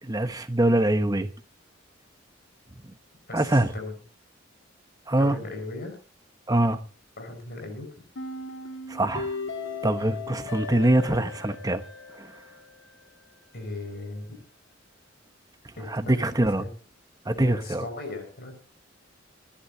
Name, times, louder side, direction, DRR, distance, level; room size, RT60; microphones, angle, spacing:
voice 1, 0.0-1.3 3.3-3.7 5.1-5.4 6.5-6.8 8.9-9.3 9.8-11.8 12.1-12.3 15.9-16.6 17.2-17.9, right 1 dB, 20° right, 1.0 m, -23 dB
voice 2, 3.3-3.9 5.1-6.0 7.2-7.9 13.5-14.4 15.8-15.9 16.2-16.7 17.3-18.5, left 2 dB, 55° left, 5.4 m, -37 dB
sound 1, 8.2-13.2, left 3 dB, 70° left, 2.2 m, -37 dB
26.0 x 11.5 x 2.8 m
head